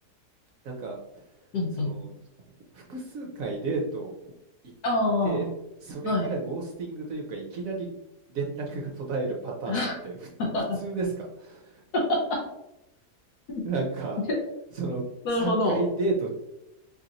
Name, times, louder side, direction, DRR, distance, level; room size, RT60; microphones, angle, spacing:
voice 1, 0.6-1.0 1.7-2.2 2.7-4.1 5.2-5.5 5.8-7.9 8.3-10.3 10.8-11.8 13.6-14.2 14.7-15.0 15.3-16.3, right 3 dB, 65° right, -1 dB, 1.0 m, -32 dB
voice 2, 1.5-1.9 4.8-5.4 6.0-6.3 9.7-10.0 10.4-10.8 11.9-12.4 13.5-13.6 15.2-15.8, left 2 dB, 75° left, -2 dB, 1.4 m, -26 dB
4.8 x 2.9 x 2.6 m, 0.90 s
omnidirectional pair, 1.7 m